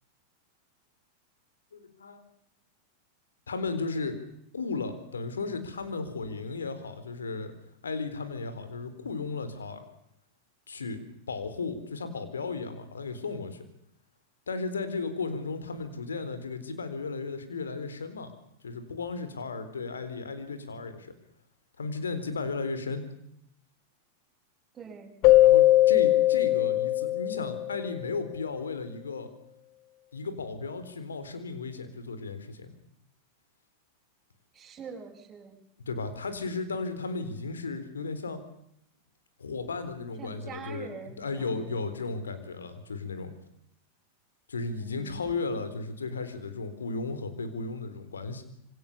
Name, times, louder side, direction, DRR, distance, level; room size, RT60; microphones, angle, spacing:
voice 1, 1.7-2.2 3.5-4.2 4.5-7.5 7.8-9.8 10.7-11.0 11.3-13.6 14.5-18.3 18.6-21.1 21.8-23.0 25.4-29.3 30.1-32.7 35.9-38.4 39.4-40.9 41.2-43.3 44.5-48.4, left 4 dB, 70° left, 10 dB, 4.3 m, -35 dB
voice 2, 24.7-25.2 34.5-35.6 40.2-42.2 44.8-45.3, right 6 dB, 20° right, 1 dB, 6.9 m, -45 dB
Keyboard (musical), 25.2-28.0, left 15 dB, 45° left, 0.9 m, -20 dB
26.5 x 25.5 x 7.0 m, 0.75 s
figure-of-eight pair, 90°, 0 cm